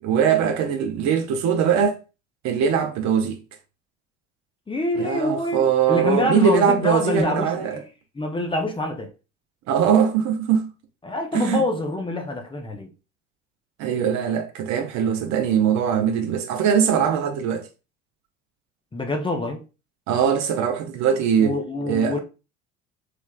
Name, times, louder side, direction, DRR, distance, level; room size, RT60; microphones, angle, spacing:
voice 1, 0.0-2.0 2.4-3.4 5.0-7.8 9.7-10.7 11.3-11.6 13.8-17.7 20.1-21.6 21.9-22.2, right 7 dB, 50° right, 0.7 m, -21 dB
voice 2, 4.7-7.9 8.1-9.1 11.0-12.9 18.9-19.6 21.4-22.2, left 2 dB, 15° left, 0.7 m, -26 dB
3.3 x 3.2 x 2.3 m
hypercardioid pair, 65°, 36 cm